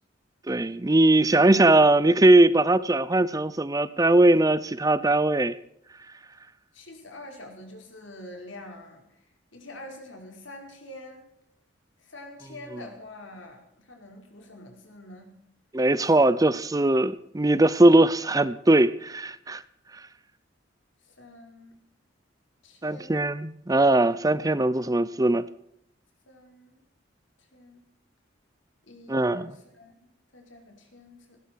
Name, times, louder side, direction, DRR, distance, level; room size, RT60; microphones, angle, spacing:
voice 1, 0.5-5.6 15.7-19.6 22.8-25.5 29.1-29.5, right 2 dB, 20° right, 0.6 m, -20 dB
voice 2, 6.7-9.1 9.5-11.2 12.0-15.3 16.2-16.3 21.0-21.7 22.6-23.2 26.3-26.8 27.5-27.8 28.8-31.4, left 1 dB, 75° left, 5.3 m, -46 dB
18.5 x 17.0 x 4.7 m
head